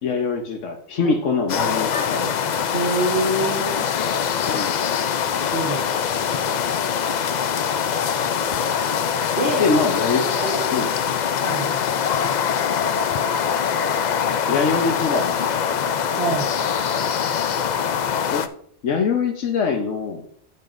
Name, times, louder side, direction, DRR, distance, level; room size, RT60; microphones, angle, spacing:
voice 1, 0.0-2.3 4.4-4.8 9.6-10.3 10.7-10.9 14.5-15.9 18.3-18.5 18.8-20.3, left 5 dB, 85° left, 2 dB, 1.3 m, -23 dB
sound 1, 1.5-18.5, left 7 dB, 60° left, 0.5 m, -23 dB
voice 2, 2.7-4.0 5.5-5.8 9.4-9.8 10.4-10.7 11.4-11.7 16.2-16.5, right 2 dB, 55° right, -2 dB, 1.5 m, -25 dB
10.5 x 8.1 x 2.5 m, 0.63 s
omnidirectional pair, 1.2 m